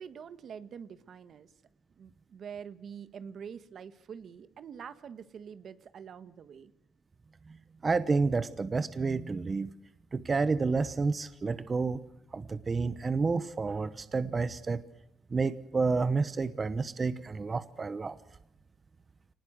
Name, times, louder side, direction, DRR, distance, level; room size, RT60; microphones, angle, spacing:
voice 1, 0.0-1.5 2.0-6.7, right 7 dB, 60° right, 13 dB, 1.4 m, -45 dB
voice 2, 7.8-9.7 10.1-12.0 12.3-14.8 15.3-18.2, right 4 dB, 35° right, 14 dB, 1.0 m, -30 dB
25.0 x 19.5 x 7.9 m, 0.79 s
cardioid pair, 90°, 0 cm